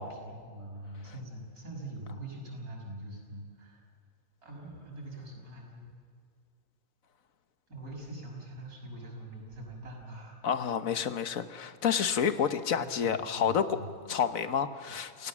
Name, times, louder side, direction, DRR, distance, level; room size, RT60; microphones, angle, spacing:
voice 1, 0.0-3.8 4.4-5.9 7.7-10.4 12.3-12.4 12.7-13.9 14.9-15.0, right 1 dB, 90° right, 0 dB, 6.3 m, -44 dB
voice 2, 10.4-13.8 14.1-15.3, left 7 dB, 70° left, 10 dB, 1.5 m, -29 dB
28.5 x 17.0 x 7.3 m, 2.3 s
omnidirectional pair, 1.5 m